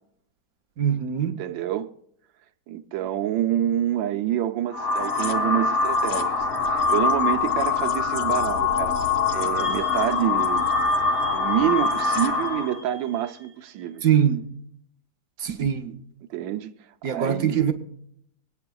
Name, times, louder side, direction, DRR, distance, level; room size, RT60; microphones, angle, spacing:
voice 1, 0.8-1.4 14.0-14.5 15.4-16.0 17.0-17.7, right 9 dB, 60° right, 1.0 m, -22 dB
voice 2, 1.4-1.9 2.7-9.0 9.3-10.7 11.3-14.0 16.3-16.7 17.0-17.6, right 11 dB, 80° right, 1.4 m, -27 dB
sound 1, 4.7-12.8, left 4 dB, 50° left, 0.7 m, -24 dB
sound 2, 9.6-14.0, right 3 dB, 10° left, 1.5 m, -40 dB
25.0 x 9.5 x 2.3 m
omnidirectional pair, 2.1 m